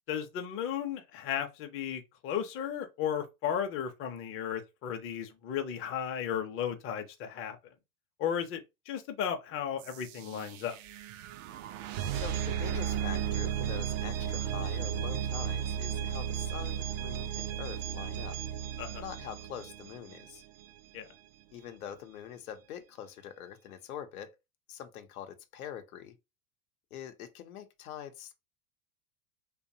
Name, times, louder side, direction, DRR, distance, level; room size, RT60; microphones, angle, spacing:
voice 1, 0.1-7.7 8.2-10.8 18.8-19.0 20.9-21.1, left 8 dB, 30° left, 0.5 m, -35 dB
sound 1, 9.8-20.6, right 9 dB, 65° right, 0.5 m, -35 dB
voice 2, 12.1-18.4 18.9-20.4 21.5-24.3 24.7-26.2 26.9-28.3, left 9 dB, 85° left, 0.7 m, -44 dB
2.8 x 2.2 x 2.6 m
hypercardioid pair, 100°, 42 cm